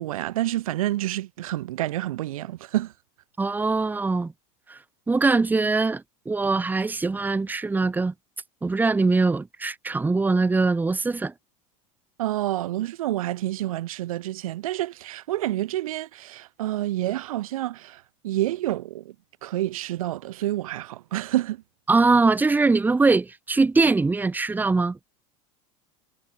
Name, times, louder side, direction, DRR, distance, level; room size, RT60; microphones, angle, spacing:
voice 1, 0.0-2.9 12.2-19.1 19.4-21.6, right 15 dB, 85° right, 1.7 m, -28 dB
voice 2, 3.4-4.3 4.7-4.8 5.1-8.1 8.6-11.3 21.9-25.0, right 3 dB, 10° right, 0.9 m, -22 dB
supercardioid pair, 115°, 17 cm